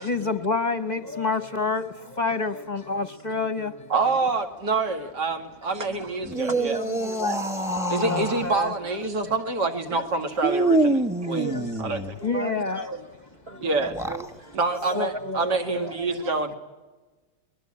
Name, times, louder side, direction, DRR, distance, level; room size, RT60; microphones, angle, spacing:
voice 1, 0.0-3.9 8.0-8.7 11.2-11.6 12.2-13.1 13.5-13.8 14.4-14.5 14.9-16.0, left 3 dB, 30° left, 0.9 m, -29 dB
voice 2, 3.9-6.8 7.9-11.5 11.8-12.2 13.6-13.9 14.5-16.6, right 3 dB, 70° right, 2.7 m, -27 dB
voice 3, 5.7-8.1 9.9-10.1 11.2-11.8 12.3-13.0 13.5-14.6 14.9-15.1 15.8-16.2, right 2 dB, 35° right, 1.5 m, -37 dB
sound 1, 6.2-8.5 10.4-12.2 13.8-14.3, right 2 dB, ahead, 1.0 m, -25 dB
29.5 x 21.0 x 8.8 m
omnidirectional pair, 1.9 m